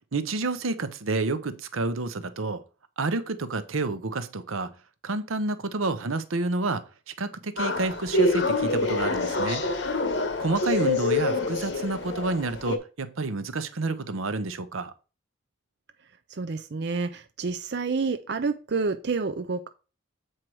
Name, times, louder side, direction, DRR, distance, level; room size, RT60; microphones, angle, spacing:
voice 1, 0.1-2.6 3.0-4.7 5.0-6.8 7.2-9.6 10.4-14.9, right 3 dB, 90° right, 0.8 m, -29 dB
sound 1, 7.6-12.8, left 2 dB, 55° left, 1.1 m, -26 dB
voice 2, 16.3-19.7, right 4 dB, 55° right, 0.5 m, -29 dB
7.6 x 4.6 x 4.7 m
head